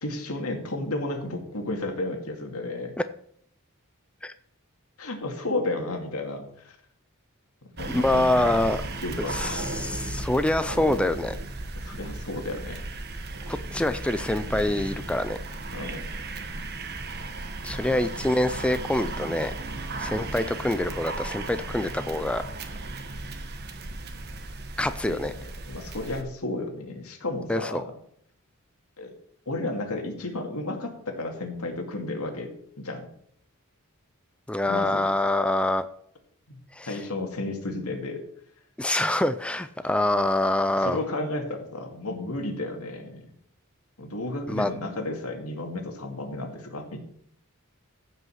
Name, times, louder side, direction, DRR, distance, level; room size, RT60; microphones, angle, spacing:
voice 1, 0.0-2.9 5.0-6.8 7.8-8.4 9.0-9.6 11.8-12.9 15.7-16.0 25.0-27.8 29.0-29.1 29.5-33.1 34.7-35.0 36.5-36.6 36.9-38.2 39.8-39.9 40.7-43.3 44.0-47.0, left 2 dB, 80° left, 3 dB, 2.2 m, -33 dB
sound 1, 7.8-26.2, right 2 dB, 45° right, 1.2 m, -35 dB
voice 2, 7.9-8.8 9.3-11.4 13.5-15.4 17.6-19.5 20.0-22.4 24.8-25.3 27.5-27.8 34.5-35.8 36.7-37.0 38.8-41.0 44.5-44.7, left 1 dB, 5° left, 11 dB, 0.3 m, -25 dB
15.0 x 5.5 x 5.7 m, 0.67 s
head